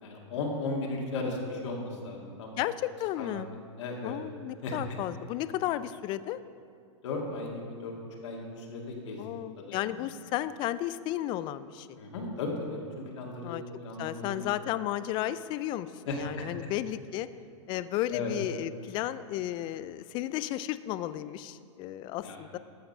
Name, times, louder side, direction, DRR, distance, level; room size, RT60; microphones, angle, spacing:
voice 1, 0.0-2.6 3.2-3.4 3.8-4.2 4.6-4.7 7.0-7.9 8.2-9.2 9.6-10.0 12.0-14.5 16.1-16.7 18.1-18.3 22.2-22.4, left 3 dB, 70° left, -1 dB, 2.1 m, -36 dB
voice 2, 2.6-3.5 4.0-6.4 9.2-12.0 13.4-13.6 14.0-17.3 17.7-22.6, left 13 dB, 30° left, 14 dB, 0.4 m, -33 dB
14.0 x 5.7 x 5.5 m, 2.3 s
hypercardioid pair, 130°, 16 cm